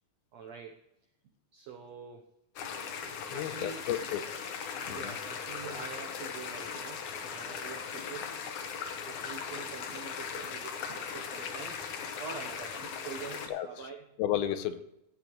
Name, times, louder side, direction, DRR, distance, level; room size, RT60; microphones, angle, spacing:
voice 1, 0.3-0.8 1.5-2.3 3.3-3.8 4.8-8.6 9.1-11.8 12.2-14.0, right 6 dB, 80° right, 3 dB, 1.5 m, -46 dB
sound 1, 2.6-13.5, left 6 dB, 65° left, 2.2 m, -39 dB
voice 2, 3.3-4.3 4.9-5.1 13.5-13.9 14.2-14.8, left 11 dB, 85° left, 11 dB, 2.6 m, -33 dB
16.0 x 8.1 x 3.1 m, 0.83 s
omnidirectional pair, 4.3 m